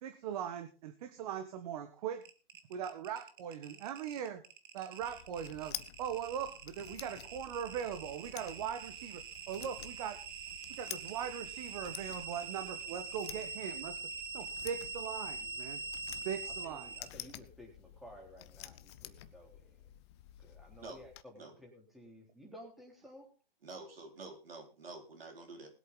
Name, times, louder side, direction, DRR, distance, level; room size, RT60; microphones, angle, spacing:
voice 1, 0.0-2.2 2.7-4.4 4.7-10.2 10.7-14.0 14.3-15.8 16.2-16.9, right 8 dB, 40° right, 7 dB, 1.5 m, -40 dB
sound 1, 2.2-17.1, right 5 dB, 55° right, 2.1 m, -44 dB
sound 2, 5.0-21.2, left 14 dB, 30° left, 0.7 m, -51 dB
voice 2, 16.6-19.8 20.4-23.3, equal, ahead, -1 dB, 3.6 m, -54 dB
voice 3, 23.6-25.7, right 3 dB, 80° right, 3 dB, 4.4 m, -48 dB
20.5 x 8.2 x 4.0 m, 0.35 s
hypercardioid pair, 140°, 29 cm